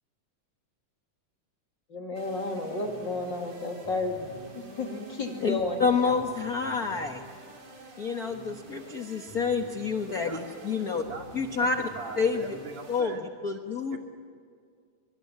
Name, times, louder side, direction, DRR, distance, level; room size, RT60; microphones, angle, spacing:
voice 1, 1.9-4.3 4.5-6.2, left 2 dB, 35° left, 2 dB, 3.0 m, -32 dB
sound 1, 2.2-13.0, right 2 dB, 85° right, 6.5 m, -48 dB
voice 2, 5.4-7.2 8.0-11.0 11.3-11.8 12.2-12.5 12.9-14.0, left 5 dB, 60° left, 5 dB, 0.9 m, -28 dB
voice 3, 10.1-11.7 12.0-13.2 13.9-14.0, right 4 dB, 70° right, 3 dB, 3.9 m, -41 dB
24.5 x 24.5 x 8.8 m, 2.1 s
omnidirectional pair, 3.7 m